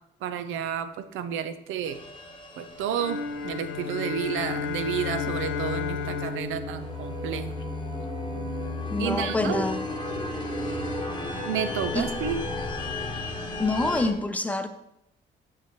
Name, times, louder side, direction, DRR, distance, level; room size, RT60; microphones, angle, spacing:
voice 1, 0.2-2.0 2.6-7.6 9.0-9.6 11.4-12.4, right 8 dB, 90° right, 10 dB, 0.6 m, -31 dB
sound 1, 1.8-14.1, left 2 dB, 25° left, 1.0 m, -35 dB
sound 2, 2.9-7.6, left 6 dB, 80° left, 0.7 m, -33 dB
sound 3, 6.8-12.8, left 1 dB, 60° right, 2.7 m, -40 dB
voice 2, 8.9-9.8 11.9-12.1 13.6-14.7, left 2 dB, 5° left, 8 dB, 0.6 m, -26 dB
6.7 x 6.0 x 2.9 m, 0.84 s
cardioid pair, 90°, 20 cm